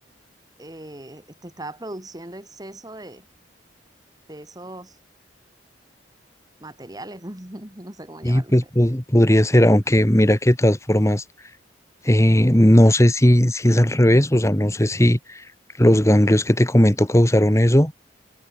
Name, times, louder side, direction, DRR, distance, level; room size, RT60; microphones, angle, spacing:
voice 1, 0.6-3.2 4.3-5.0 6.6-8.5 8.8-8.9, right 1 dB, 20° right, 2.6 m, -39 dB
voice 2, 8.2-11.2 12.0-15.4 15.8-17.9, equal, 15° left, 1.7 m, -16 dB
head